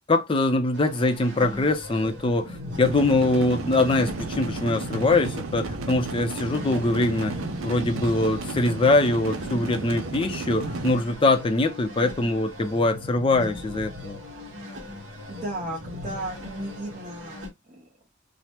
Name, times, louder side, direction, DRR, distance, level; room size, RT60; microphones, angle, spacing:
voice 1, 0.1-7.3 7.6-14.2, left 2 dB, 25° left, 0.4 m, -23 dB
sound 1, 0.7-17.5, left 2 dB, 65° right, 1.0 m, -39 dB
sound 2, 2.8-10.9, right 4 dB, 85° right, 0.5 m, -33 dB
voice 2, 15.3-18.1, right 1 dB, 35° right, 0.6 m, -35 dB
2.8 x 2.0 x 3.2 m
head